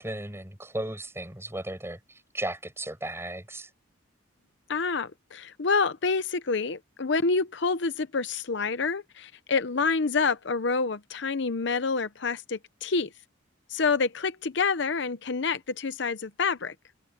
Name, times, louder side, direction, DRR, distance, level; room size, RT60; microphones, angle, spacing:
voice 1, 0.0-3.7, right 1 dB, 15° right, 5.4 m, -35 dB
voice 2, 4.7-13.1 13.7-16.7, left 4 dB, 60° left, 0.7 m, -27 dB
head